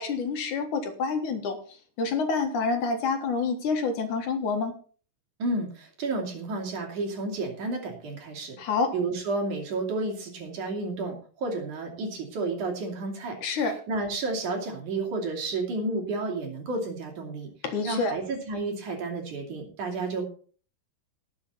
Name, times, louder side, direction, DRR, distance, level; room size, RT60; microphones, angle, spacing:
voice 1, 0.0-1.6 2.0-4.7 8.6-8.9 13.4-13.8 17.6-18.1, left 4 dB, 65° left, 5 dB, 2.9 m, -27 dB
voice 2, 5.4-8.6 8.9-13.4 13.9-17.5 17.8-20.3, right 3 dB, 60° right, 2 dB, 4.1 m, -31 dB
18.5 x 7.4 x 4.1 m, 0.42 s
omnidirectional pair, 3.9 m